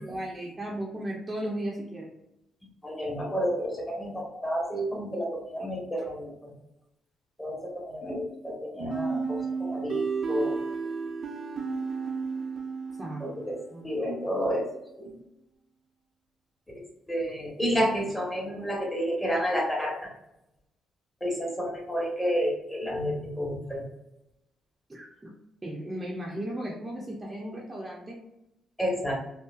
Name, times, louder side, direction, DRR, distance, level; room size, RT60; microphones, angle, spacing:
voice 1, 0.0-2.1 13.0-13.4 13.7-13.9 24.9-25.3 25.6-28.2, right 1 dB, 20° right, -2 dB, 0.8 m, -35 dB
voice 2, 2.8-6.5 7.4-10.5 13.2-13.6 13.8-14.7 15.0-15.1 17.1-20.1 21.2-23.8 28.8-29.1, equal, 10° left, -2 dB, 1.4 m, -30 dB
sound 1, 8.9-13.6, right 5 dB, 60° right, 0.7 m, -32 dB
5.3 x 2.1 x 2.4 m, 0.87 s
cardioid pair, 90°, 0 cm